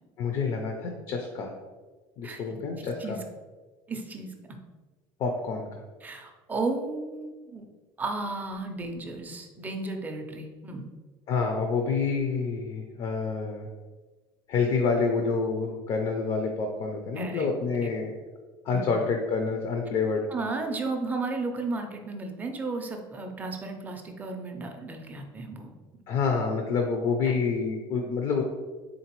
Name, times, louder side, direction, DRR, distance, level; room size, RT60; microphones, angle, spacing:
voice 1, 0.2-1.5 2.2-3.2 5.2-5.7 11.3-13.7 14.5-18.1 18.6-20.3 26.1-28.4, left 4 dB, 45° left, 3 dB, 0.4 m, -28 dB
voice 2, 2.8-3.2 3.9-4.3 6.0-7.6 8.0-10.9 17.2-17.5 17.8-17.9 18.7-18.9 20.3-25.7 27.2-27.4, right 3 dB, 15° right, 3 dB, 0.4 m, -34 dB
3.8 x 3.7 x 2.9 m, 1.3 s
cardioid pair, 150°, 11 cm